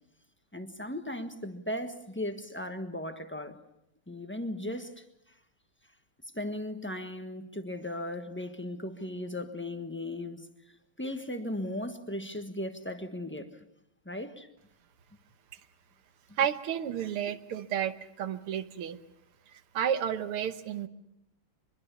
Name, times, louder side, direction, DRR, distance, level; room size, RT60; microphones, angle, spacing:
voice 1, 0.5-3.6 4.1-5.0 6.3-10.5 11.0-13.5 14.0-14.5, left 1 dB, 5° left, 1.0 m, -37 dB
voice 2, 16.4-19.0 19.7-20.9, right 9 dB, 85° right, 2.0 m, -31 dB
24.5 x 22.5 x 6.9 m
omnidirectional pair, 2.4 m